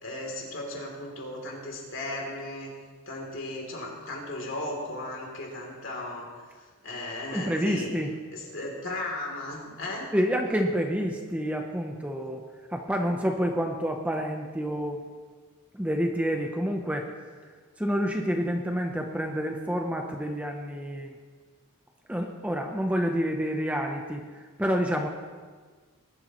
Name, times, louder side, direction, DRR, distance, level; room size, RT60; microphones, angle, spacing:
voice 1, 0.0-2.7 3.1-7.9 8.3-10.1, left 2 dB, 60° left, -1 dB, 3.2 m, -36 dB
voice 2, 7.3-8.1 10.1-12.4 12.7-15.0 15.7-17.1 17.4-21.2 22.1-25.1, equal, 5° right, 2 dB, 0.8 m, -28 dB
20.5 x 12.5 x 3.1 m, 1.5 s
head